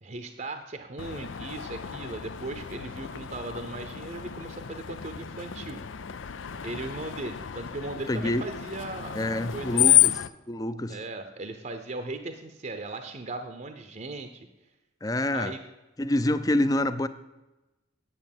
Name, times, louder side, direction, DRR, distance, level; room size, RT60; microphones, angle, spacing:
voice 1, 0.0-5.8 6.6-10.0 10.9-14.5 15.3-15.6, right 2 dB, 40° right, 7 dB, 0.7 m, -38 dB
Screech, 1.0-10.3, left 12 dB, 85° left, 0.5 m, -29 dB
voice 2, 8.1-8.4 9.1-10.1 10.5-11.0 15.0-15.5 16.0-17.1, left 1 dB, 20° left, 13 dB, 0.5 m, -26 dB
9.8 x 7.7 x 7.3 m, 1.0 s
head